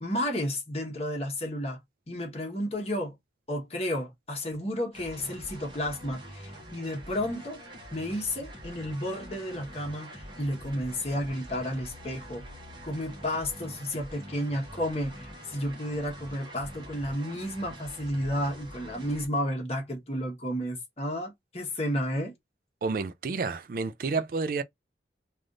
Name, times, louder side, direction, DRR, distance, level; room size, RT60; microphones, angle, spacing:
voice 1, 0.0-1.8 2.1-3.1 3.5-7.6 7.9-12.6 12.8-22.3, equal, 35° left, 1.1 m, -32 dB
sound 1, 4.9-19.3, equal, 25° right, 0.9 m, -45 dB
voice 2, 22.8-24.6, right 4 dB, 50° right, 0.3 m, -30 dB
3.3 x 2.5 x 2.5 m
head